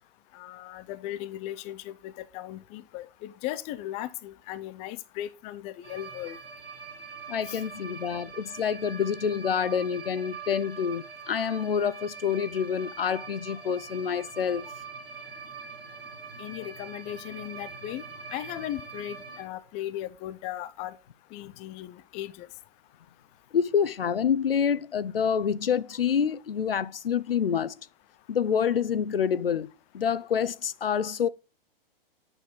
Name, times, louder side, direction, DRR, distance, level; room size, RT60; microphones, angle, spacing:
voice 1, 0.3-6.4 7.4-7.6 16.4-18.0 18.3-21.0 21.3-22.5, left 13 dB, 25° left, 0.6 m, -37 dB
sound 1, 5.8-19.4, right 5 dB, 75° right, 2.2 m, -43 dB
voice 2, 7.3-14.7 23.5-27.7 28.3-29.7 29.9-31.3, left 7 dB, 75° left, 0.6 m, -27 dB
8.8 x 6.4 x 3.8 m
figure-of-eight pair, 110°, 29 cm